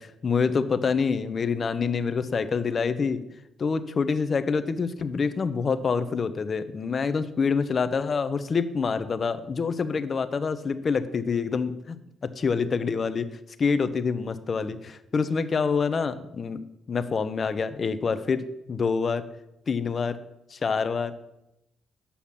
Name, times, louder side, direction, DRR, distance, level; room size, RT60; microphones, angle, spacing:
voice 1, 0.0-3.2 3.6-12.0 12.4-13.3 13.6-16.6 16.9-18.4 18.7-19.2 19.7-20.2 20.5-21.1, left 5 dB, 40° left, 12 dB, 0.8 m, -26 dB
8.5 x 5.8 x 7.3 m, 0.87 s
cardioid pair, 90°, 0 cm